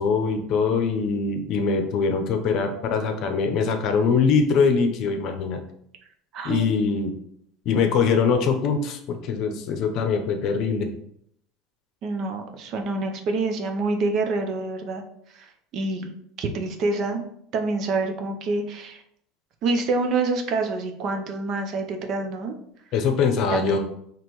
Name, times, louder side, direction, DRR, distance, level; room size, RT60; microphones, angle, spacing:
voice 1, 0.0-5.6 6.4-7.1 7.7-10.9 22.9-23.8, left 5 dB, 55° left, 6 dB, 0.6 m, -22 dB
voice 2, 6.3-6.7 12.0-15.0 15.3-15.5 15.7-17.2 17.5-19.0 19.6-22.5 23.5-23.8, right 3 dB, 50° right, 5 dB, 0.6 m, -27 dB
4.2 x 3.0 x 3.0 m, 0.70 s
supercardioid pair, 120°, 0 cm